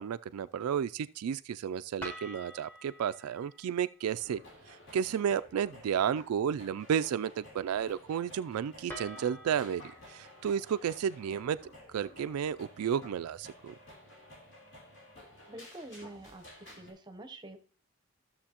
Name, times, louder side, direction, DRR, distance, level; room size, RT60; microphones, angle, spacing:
voice 1, 0.0-4.4 4.9-11.6 11.9-13.7, right 8 dB, 85° right, 0.3 m, -32 dB
sound 1, 2.0-4.1 8.9-12.1, equal, 10° left, 1.1 m, -48 dB
sound 2, 4.2-16.9, left 1 dB, 55° left, 3.2 m, -54 dB
voice 2, 15.5-16.4 16.7-17.6, right 1 dB, 20° right, 0.7 m, -46 dB
13.5 x 6.9 x 2.9 m
head